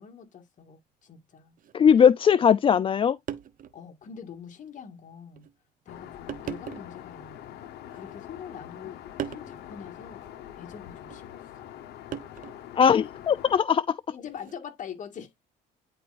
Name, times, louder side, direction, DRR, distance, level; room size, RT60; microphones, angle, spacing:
voice 1, 0.0-1.6 3.7-5.5 5.9-9.0 9.2-10.2 10.5-11.4 14.1-15.3, left 7 dB, 50° left, 2.0 m, -44 dB
sound 1, 1.6-1.7 2.8-2.9 3.3-3.8 4.3-4.4 5.3-5.5 6.3-7.0 7.8-8.5 9.2-9.5 11.1-11.3 12.1-12.7 14.3-14.6, right 9 dB, 55° right, 0.9 m, -38 dB
voice 2, 1.7-3.2 12.8-13.8, left 7 dB, 30° left, 0.4 m, -19 dB
Aircraft, 5.9-13.6, left 11 dB, 75° left, 1.2 m, -44 dB
9.9 x 4.5 x 2.5 m
cardioid pair, 110°, 17 cm